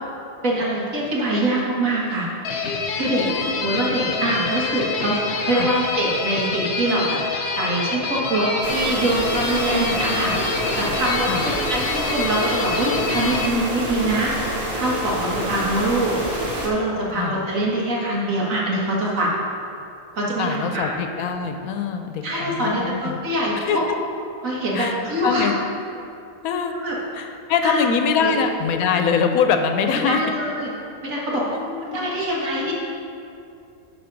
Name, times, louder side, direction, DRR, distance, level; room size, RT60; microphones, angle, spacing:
voice 1, 0.4-2.3 2.9-3.3 3.6-7.2 7.6-10.3 10.8-14.3 14.8-16.2 16.6-19.3 20.1-20.9 22.2-23.8 24.4-25.5 26.8-27.0 27.6-27.9 28.2-28.4 30.0-30.7 31.0-31.5 31.8-32.7, right 1 dB, 70° right, -4 dB, 1.9 m, -24 dB
metal guitar riff dis, 2.4-13.5, left 4 dB, 55° left, 0.9 m, -27 dB
voice 2, 3.1-3.5 5.6-5.7 9.6-10.3 11.3-11.4 17.1-17.3 20.4-23.2 23.6-23.8 24.7-24.9 25.2-25.5 26.4-26.7 27.1-30.2 31.5-32.2, left 6 dB, 85° left, 6 dB, 1.1 m, -23 dB
Scary sounds, 8.6-16.7, right 1 dB, 45° right, 1.5 m, -27 dB
11.5 x 4.1 x 5.2 m, 2.6 s
omnidirectional pair, 1.5 m